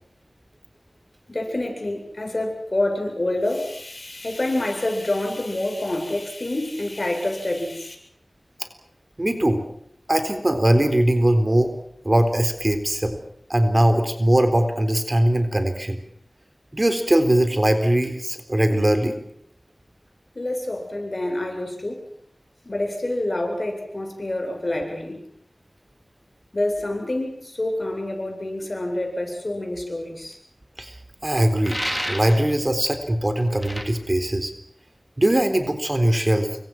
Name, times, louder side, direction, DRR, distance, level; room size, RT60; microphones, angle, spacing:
voice 1, 1.3-8.0 20.3-22.0 22.6-25.2 26.5-30.4, left 1 dB, 50° left, 3 dB, 7.9 m, -27 dB
voice 2, 9.2-9.6 10.1-11.7 12.0-13.2 13.5-16.0 16.7-19.2 30.8-31.0 31.2-31.8 32.1-34.5 35.2-36.5, right 1 dB, 35° right, 7 dB, 4.0 m, -20 dB
sound 1, 31.6-32.5 33.6-33.9, equal, ahead, 3.7 m, -29 dB
29.0 x 24.5 x 6.2 m, 0.68 s
wide cardioid pair, 55°, 0 cm